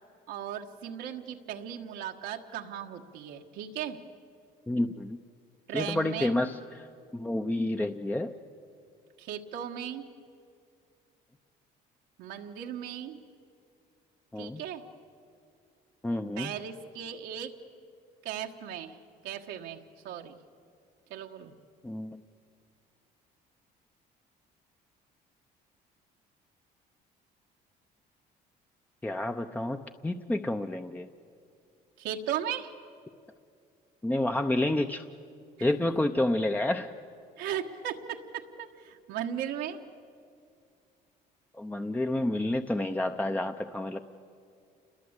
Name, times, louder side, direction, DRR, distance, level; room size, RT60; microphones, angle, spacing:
voice 1, 0.3-4.0 5.7-6.4 9.2-10.0 12.2-13.2 14.4-14.8 16.4-17.5 18.2-19.0 19.2-20.4 21.1-21.5 32.0-32.7 37.4-39.8, right 9 dB, 90° right, 2 dB, 1.5 m, -37 dB
voice 2, 4.7-5.2 5.7-6.9 7.1-8.3 14.3-14.6 16.0-16.5 21.8-22.2 29.0-31.1 34.0-35.0 35.6-36.9 41.5-44.0, left 1 dB, 10° left, 6 dB, 0.7 m, -29 dB
28.5 x 21.5 x 8.1 m, 2.4 s
cardioid pair, 110°, 17 cm